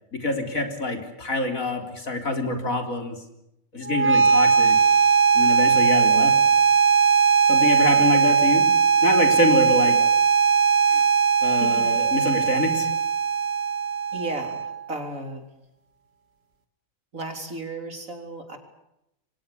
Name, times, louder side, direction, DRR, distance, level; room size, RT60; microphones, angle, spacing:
voice 1, 0.1-3.2 3.7-4.8 5.3-6.4 7.5-8.7 9.0-10.0 10.9-11.0 11.4-12.9, left 2 dB, 80° left, 5 dB, 4.2 m, -25 dB
sound 1, 3.8-14.9, right 6 dB, 50° right, 2.2 m, -19 dB
voice 2, 14.1-15.4 17.1-18.6, right 2 dB, 75° right, 4 dB, 4.4 m, -34 dB
28.5 x 24.0 x 7.1 m, 0.86 s
omnidirectional pair, 1.4 m